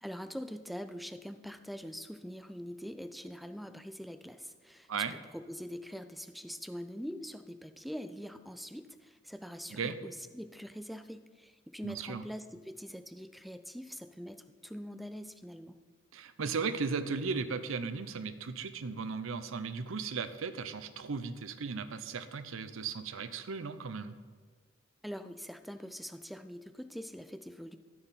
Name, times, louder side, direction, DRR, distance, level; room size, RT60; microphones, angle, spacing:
voice 1, 0.0-15.8 25.0-27.8, equal, ahead, 10 dB, 0.3 m, -44 dB
voice 2, 11.8-12.2 16.1-24.1, right 5 dB, 85° right, 11 dB, 0.6 m, -36 dB
13.0 x 4.7 x 5.6 m, 1.5 s
head